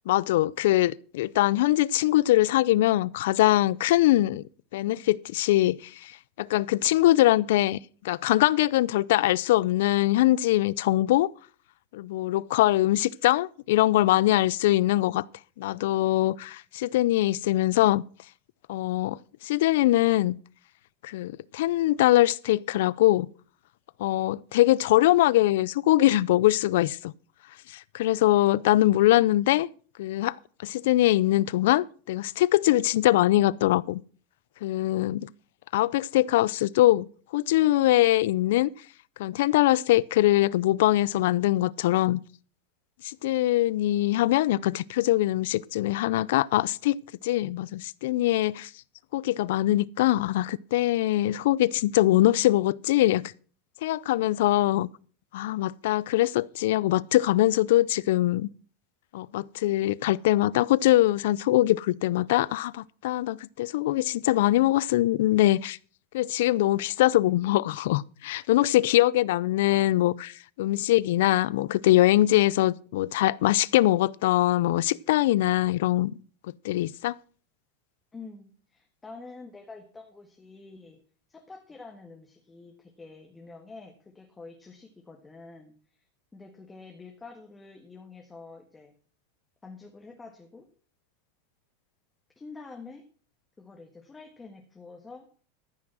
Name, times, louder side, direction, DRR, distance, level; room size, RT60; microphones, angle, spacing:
voice 1, 0.0-4.4 4.7-6.1 6.4-7.8 8.0-11.3 11.9-15.2 15.6-18.0 18.7-20.4 21.0-23.3 24.0-27.1 27.7-29.7 30.0-30.4 30.6-34.0 34.6-35.3 35.7-37.1 37.3-38.7 39.2-42.2 43.0-48.7 49.1-53.2 53.8-54.9 55.3-58.5 59.1-65.8 66.1-76.1 76.6-77.2, left 15 dB, 75° left, 0.4 m, -23 dB
voice 2, 78.1-81.0 81.3-86.0 86.3-88.9 89.6-90.7 92.3-93.1 93.6-95.5, left 3 dB, 15° left, 1.6 m, -47 dB
14.0 x 6.1 x 6.2 m
supercardioid pair, 135°, 0 cm